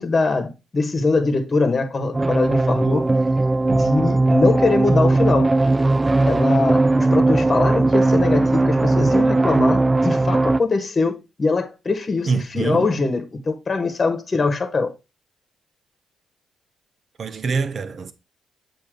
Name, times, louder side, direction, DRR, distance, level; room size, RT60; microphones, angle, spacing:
voice 1, 0.0-3.1 3.7-5.5 6.3-14.9, left 3 dB, 40° left, 1.2 m, -22 dB
sound 1, 2.1-10.6, right 2 dB, 25° right, 0.4 m, -18 dB
voice 2, 12.2-12.9 17.2-18.1, right 5 dB, 55° right, 0.8 m, -24 dB
7.4 x 2.8 x 5.0 m
supercardioid pair, 65°, 0 cm